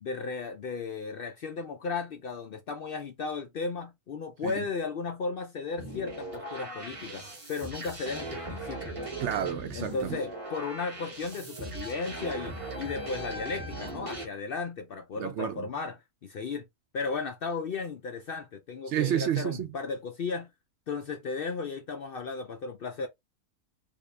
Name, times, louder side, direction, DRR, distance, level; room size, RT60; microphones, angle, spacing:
voice 1, 0.0-9.0 9.7-16.6 16.9-20.5 20.9-23.1, left 4 dB, 70° left, 0.5 m, -35 dB
sound 1, 5.8-14.3, right 1 dB, 25° right, 0.9 m, -39 dB
voice 2, 9.2-10.2 15.2-15.7 18.9-19.7, right 10 dB, 65° right, 0.8 m, -30 dB
3.5 x 2.5 x 3.2 m
omnidirectional pair, 1.5 m